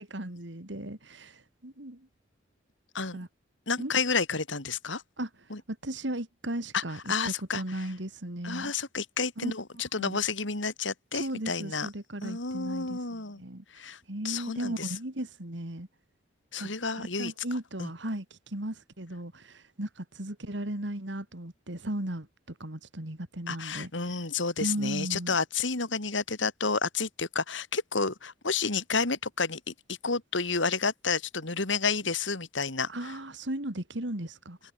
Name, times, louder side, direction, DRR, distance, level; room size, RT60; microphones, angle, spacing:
voice 1, 0.0-2.1 3.1-3.3 3.8-3.9 5.2-5.3 5.7-8.7 9.4-9.5 10.0-10.2 11.1-13.6 14.1-15.9 16.6-16.7 17.0-23.9 24.6-25.4 32.9-34.6, right 1 dB, 65° right, 3.0 m, -36 dB
voice 2, 3.7-5.0 5.5-5.6 6.7-6.8 7.1-7.6 8.4-11.9 12.2-13.4 13.7-14.0 14.2-14.9 16.5-17.3 17.8-17.9 23.5-32.9, left 4 dB, 75° left, 3.0 m, -30 dB
head